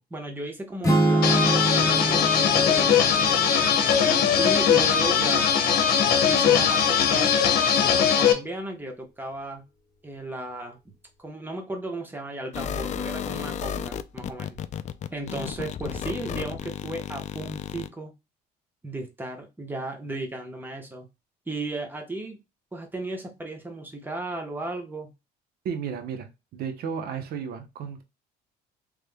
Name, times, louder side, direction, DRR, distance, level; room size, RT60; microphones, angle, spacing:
voice 1, 0.1-2.3 2.5-3.2 4.4-5.5 6.3-9.6 10.0-10.9 11.2-14.6 15.1-18.1 18.8-21.1 21.5-22.4 22.7-25.1, right 2 dB, 10° right, 1.1 m, -35 dB
sound 1, 0.8-5.0, right 1 dB, 20° left, 1.5 m, -26 dB
sound 2, 1.2-8.3, left 7 dB, 65° left, 0.9 m, -20 dB
voice 2, 4.8-5.4 6.3-6.7 25.6-28.0, right 7 dB, 65° right, 0.8 m, -34 dB
sound 3, 12.5-17.9, left 8 dB, 45° left, 0.4 m, -33 dB
3.4 x 3.3 x 2.2 m
cardioid pair, 110°, 17 cm